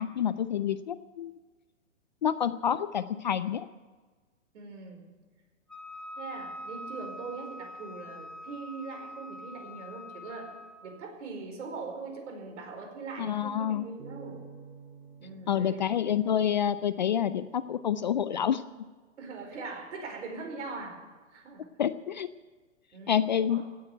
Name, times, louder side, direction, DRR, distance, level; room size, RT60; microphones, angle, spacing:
voice 1, 0.0-1.3 2.2-3.7 13.2-13.9 15.5-18.6 21.8-22.3 23.1-23.6, left 9 dB, 40° left, 14 dB, 0.4 m, -28 dB
voice 2, 4.5-5.1 6.1-14.5 15.2-15.8 19.2-21.0 21.3-21.6 22.9-23.6, right 4 dB, 65° right, 3 dB, 4.9 m, -41 dB
Wind instrument woodwind instrument, 5.7-10.9, left 1 dB, 5° left, 2.4 m, -44 dB
sound 1, 14.0-17.4, right 5 dB, 45° right, 4.3 m, -50 dB
17.0 x 8.7 x 9.1 m, 1.4 s
hypercardioid pair, 150°, 39 cm